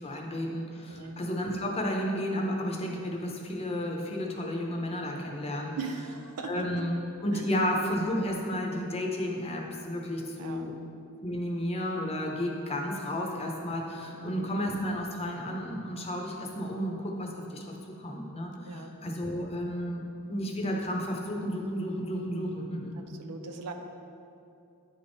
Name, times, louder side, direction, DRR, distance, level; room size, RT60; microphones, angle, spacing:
voice 1, 0.0-5.8 6.4-10.8 11.2-17.6 18.0-22.9, equal, 25° left, 0 dB, 0.7 m, -32 dB
voice 2, 0.9-1.2 5.8-6.9 7.3-7.4 10.4-10.7 14.1-14.5 18.6-19.0 23.0-23.7, right 4 dB, 80° right, 6 dB, 0.5 m, -40 dB
9.4 x 3.5 x 4.0 m, 2.6 s
head